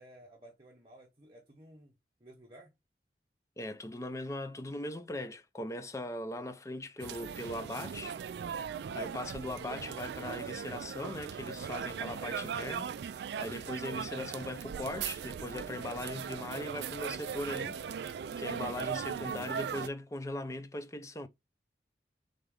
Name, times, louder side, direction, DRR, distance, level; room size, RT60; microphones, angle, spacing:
voice 1, 0.0-2.7, right 1 dB, 30° right, 0.8 m, -56 dB
voice 2, 3.6-8.2 8.5-8.6 8.9-21.3, left 1 dB, 15° left, 0.5 m, -40 dB
sound 1, 7.0-19.9, right 7 dB, 75° right, 0.3 m, -39 dB
3.8 x 3.6 x 3.3 m
head